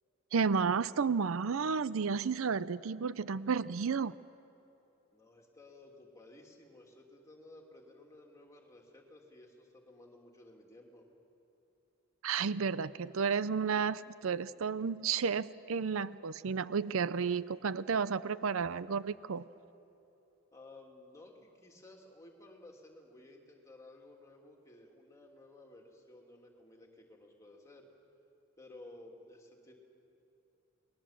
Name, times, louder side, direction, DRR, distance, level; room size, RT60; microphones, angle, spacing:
voice 1, 0.3-4.1 12.2-19.4, right 5 dB, 75° right, 16 dB, 0.5 m, -32 dB
voice 2, 5.1-11.1 20.5-27.9 28.6-29.7, left 2 dB, 15° left, 0 dB, 3.0 m, -55 dB
29.5 x 21.0 x 7.5 m, 2.9 s
head